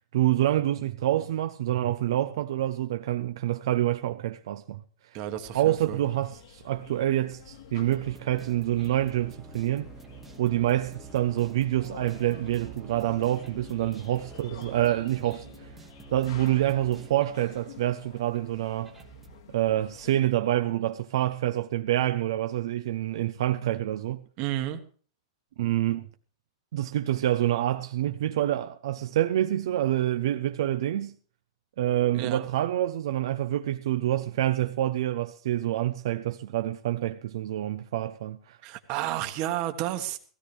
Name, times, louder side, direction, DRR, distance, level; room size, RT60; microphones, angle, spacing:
voice 1, 0.1-4.8 5.5-9.9 10.4-15.4 16.1-18.9 19.5-24.2 25.6-26.1 26.7-31.1 31.8-38.6, right 13 dB, 60° right, 0.7 m, -27 dB
voice 2, 5.1-6.0 24.4-24.8 32.1-32.5 38.6-40.2, right 13 dB, 30° right, 1.4 m, -31 dB
sound 1, 5.3-20.3, left 6 dB, 65° left, 2.2 m, -50 dB
sound 2, 7.8-17.9 18.3-18.4 18.8-19.4, right 5 dB, 5° right, 1.1 m, -48 dB
16.5 x 16.0 x 3.4 m
supercardioid pair, 165°, 3 cm